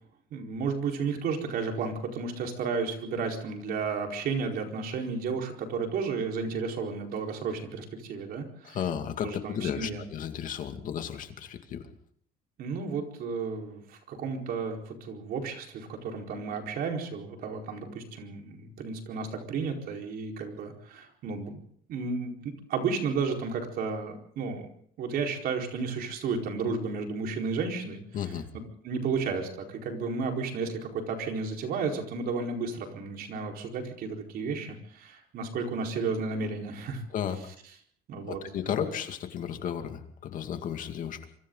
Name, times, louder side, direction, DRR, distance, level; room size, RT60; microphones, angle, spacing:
voice 1, 0.3-8.8 9.2-10.0 12.6-21.6 21.9-24.7 25.0-37.0 37.5-37.6 38.1-38.9, right 5 dB, 60° right, 2 dB, 4.6 m, -33 dB
voice 2, 8.6-11.8 28.1-28.5 37.1-37.4 38.3-41.2, left 9 dB, 50° left, 6 dB, 2.3 m, -33 dB
26.5 x 25.0 x 4.0 m, 0.62 s
cardioid pair, 135°, 17 cm